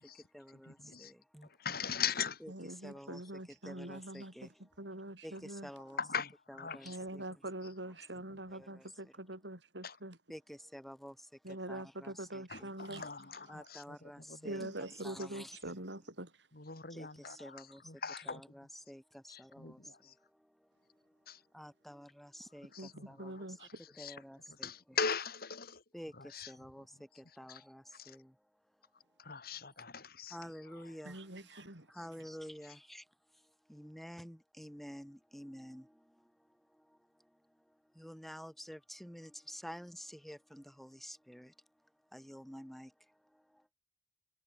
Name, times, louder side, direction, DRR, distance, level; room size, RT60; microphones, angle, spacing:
voice 1, 0.0-1.5 2.4-2.5 2.8-4.6 5.2-6.0 6.5-7.2 8.5-9.1 10.3-13.0 13.5-15.8 16.9-21.2 21.5-23.6 24.0-24.7 25.9-28.4 30.3-31.5 31.9-33.1 33.4-37.4 37.7-41.5 42.1-43.7, equal, ahead, 4.0 m, -51 dB
voice 2, 0.6-1.1 1.4-2.4 6.0-7.0 9.8-10.0 12.5-14.7 16.5-18.4 19.3-20.1 21.3-21.4 22.7-24.2 24.5-25.8 26.1-26.9 27.5-27.6 27.9-28.2 29.2-30.4 30.7-30.8 31.5-31.6, left 6 dB, 60° left, 3.6 m, -41 dB
voice 3, 2.5-4.5 4.8-5.7 6.8-10.2 11.4-13.0 14.4-16.3 22.8-23.8 31.0-31.9, right 1 dB, 85° right, 6.6 m, -44 dB
head